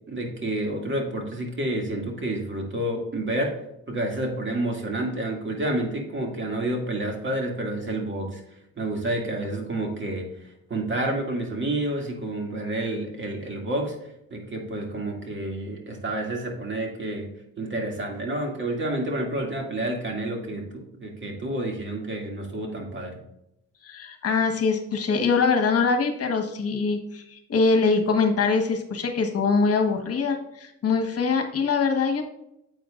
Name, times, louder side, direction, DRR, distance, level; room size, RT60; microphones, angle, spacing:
voice 1, 0.1-3.5 3.9-8.4 8.8-10.3 10.7-14.0 14.3-17.3 17.6-23.2, right 1 dB, 40° right, 1 dB, 2.4 m, -29 dB
voice 2, 23.8-32.2, left 4 dB, 50° left, 4 dB, 1.4 m, -23 dB
9.4 x 8.0 x 2.5 m, 0.82 s
cardioid pair, 90°, 30 cm